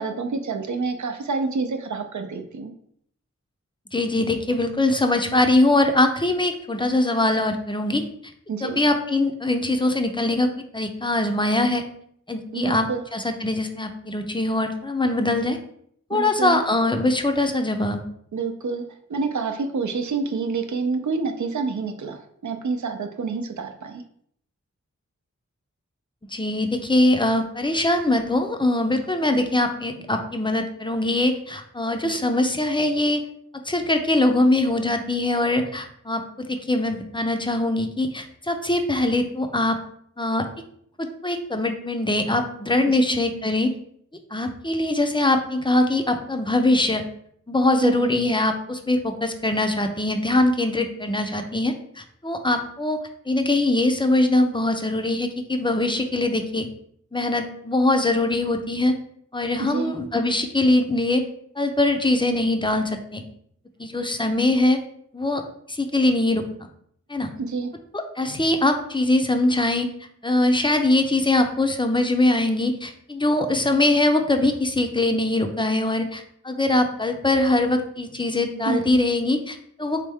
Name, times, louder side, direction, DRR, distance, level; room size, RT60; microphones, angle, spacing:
voice 1, 0.0-2.7 8.5-8.8 12.5-13.0 16.1-16.6 18.3-18.8 19.1-24.0 42.9-43.0 47.8-48.1 59.6-59.9 67.4-67.7 78.7-78.9, right 4 dB, 70° right, 6 dB, 0.6 m, -27 dB
voice 2, 3.9-8.0 8.6-11.8 12.3-15.6 16.1-18.0 26.3-33.2 33.7-39.8 40.2-40.4 41.0-43.7 44.3-47.0 47.5-53.0 53.3-56.7 57.1-59.0 59.3-61.2 61.6-63.2 63.8-64.8 65.1-65.4 65.7-66.4 67.1-67.3 68.2-69.9 70.2-80.0, left 2 dB, 15° left, 5 dB, 0.5 m, -22 dB
3.5 x 3.3 x 3.4 m, 0.67 s
wide cardioid pair, 70°, 30 cm